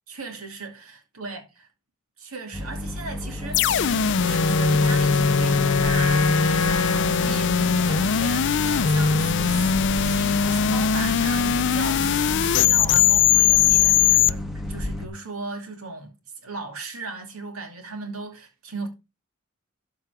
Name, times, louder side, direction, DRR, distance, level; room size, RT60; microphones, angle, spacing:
voice 1, 0.1-1.7 2.2-16.2 16.4-18.9, right 3 dB, 85° right, 2.6 m, -37 dB
sound 1, 2.5-15.1, left 1 dB, ahead, 1.4 m, -32 dB
sound 2, 3.5-14.3, left 7 dB, 55° left, 0.5 m, -21 dB
Wind instrument woodwind instrument, 4.2-8.2, left 3 dB, 90° left, 0.9 m, -27 dB
13.0 x 4.6 x 4.9 m
head